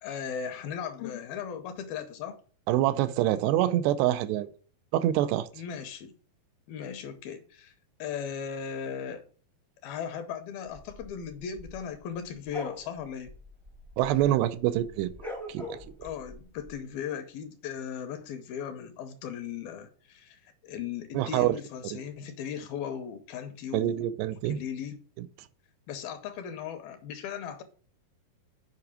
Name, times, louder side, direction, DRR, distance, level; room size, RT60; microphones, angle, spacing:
voice 1, 0.0-2.4 5.5-6.1 6.7-7.7 8.0-9.2 9.8-13.3 16.0-24.1 24.5-25.0 25.9-27.6, left 8 dB, 75° left, 2.4 m, -37 dB
voice 2, 2.7-4.5 4.9-5.5 14.0-15.1 15.5-15.8 21.1-21.6 21.9-22.0 23.7-24.6 25.2-25.3, right 13 dB, 85° right, 2.7 m, -26 dB
sound 1, 10.7-14.4 14.7-16.7, left 1 dB, ahead, 0.4 m, -43 dB
8.4 x 5.1 x 5.0 m
omnidirectional pair, 4.8 m